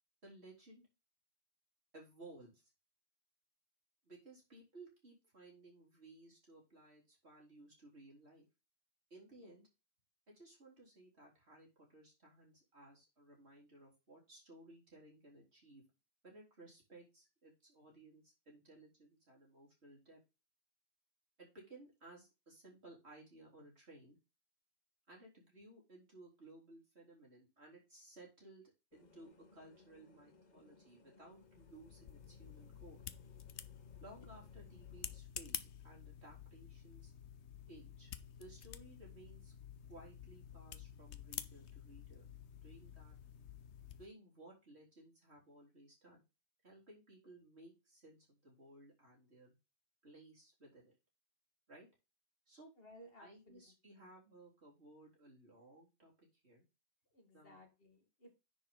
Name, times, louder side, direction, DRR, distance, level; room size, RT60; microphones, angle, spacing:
voice 1, 0.2-0.8 1.9-2.7 4.0-8.5 9.1-9.7 10.3-15.8 16.2-20.2 21.4-24.2 25.1-28.6 28.9-33.0 34.0-37.1 37.7-38.1 38.4-39.5 39.9-42.2 42.6-43.2 44.0-46.2 46.6-49.6 50.0-50.9 51.7-51.9 52.5-52.7 53.2-56.6 57.3-57.6, right 2 dB, 70° right, -3 dB, 4.0 m, -59 dB
sound 1, 28.9-35.2, left 4 dB, 40° left, 1.1 m, -66 dB
sound 2, 31.3-44.1, left 9 dB, 85° left, 1.0 m, -50 dB
voice 2, 52.8-54.1 57.1-58.4, equal, 60° left, 3 dB, 2.3 m, -60 dB
10.0 x 5.0 x 3.8 m, 0.27 s
omnidirectional pair, 1.1 m